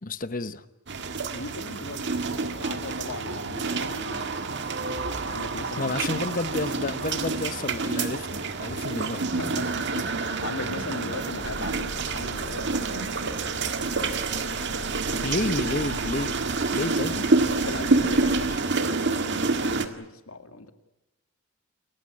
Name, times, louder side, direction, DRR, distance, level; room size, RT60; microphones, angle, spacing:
voice 1, 0.0-0.6 5.8-9.3 15.2-16.4 16.7-17.3, left 2 dB, 40° left, 1.0 m, -30 dB
sound 1, 0.9-19.9, right 3 dB, 60° right, 1.8 m, -28 dB
voice 2, 1.3-2.3 2.6-4.3 5.3-5.9 9.3-13.6 14.4-15.3 17.5-20.7, left 2 dB, 80° left, 2.1 m, -39 dB
sound 2, 11.4-18.6, left 1 dB, 60° left, 1.8 m, -41 dB
28.5 x 15.0 x 9.7 m
head